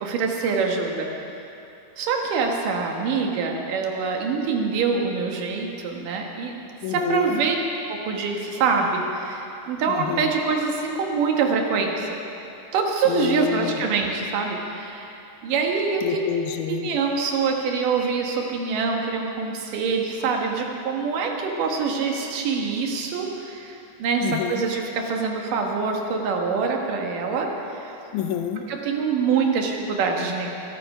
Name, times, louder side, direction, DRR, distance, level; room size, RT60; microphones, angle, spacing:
voice 1, 0.0-1.1 2.0-6.6 6.9-7.6 7.9-12.2 12.7-15.1 15.4-16.2 16.7-27.5 27.8-28.0 28.7-30.5, right 5 dB, 75° right, 1 dB, 3.0 m, -25 dB
voice 2, 6.8-7.4 9.9-10.3 13.1-13.8 16.0-16.9 24.2-24.6 28.1-28.6, left 9 dB, 75° left, 7 dB, 2.2 m, -28 dB
22.5 x 9.0 x 5.6 m, 2.9 s
omnidirectional pair, 3.8 m